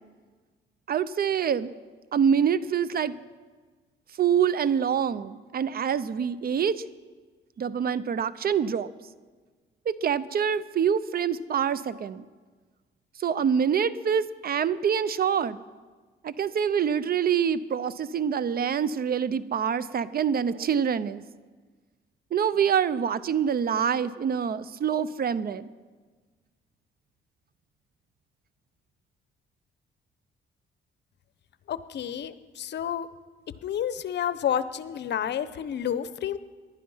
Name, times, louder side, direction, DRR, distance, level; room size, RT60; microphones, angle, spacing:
voice 1, 0.9-1.7 2.1-3.2 4.2-6.8 7.6-8.9 9.9-12.2 13.2-15.6 16.2-21.2 22.3-25.7, right 7 dB, 50° right, 17 dB, 0.7 m, -25 dB
voice 2, 31.7-33.1 33.6-36.4, left 9 dB, 60° left, 14 dB, 0.8 m, -30 dB
19.0 x 11.5 x 5.6 m, 1.4 s
cardioid pair, 90°, 20 cm